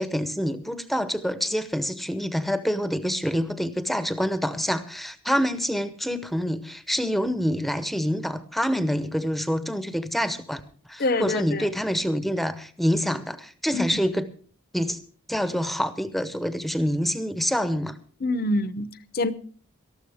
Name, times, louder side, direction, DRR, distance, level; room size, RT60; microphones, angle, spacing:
voice 1, 0.0-10.6 10.9-14.3 14.7-15.0 15.3-18.0, equal, ahead, 0.8 m, -26 dB
voice 2, 11.0-11.6 13.7-13.9 18.2-19.3, left 2 dB, 45° left, 0.7 m, -25 dB
19.0 x 13.5 x 3.5 m
head